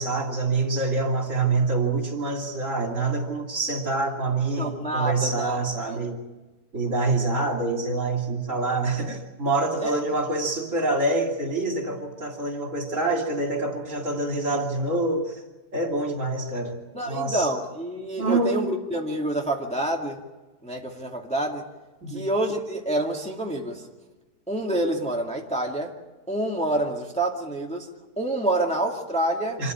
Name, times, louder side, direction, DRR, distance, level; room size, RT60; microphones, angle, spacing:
voice 1, 0.0-6.2 6.7-15.4 15.7-16.8 17.1-17.5 18.2-18.6 22.0-22.3 29.6-29.7, right 3 dB, 50° right, 2 dB, 3.4 m, -26 dB
voice 2, 4.6-5.6 9.8-10.0 16.9-20.2 20.6-21.6 22.1-23.9 24.5-25.9 26.3-27.9 28.2-29.6, right 1 dB, 5° left, 0 dB, 2.2 m, -27 dB
26.5 x 14.0 x 9.7 m, 1.2 s
omnidirectional pair, 1.7 m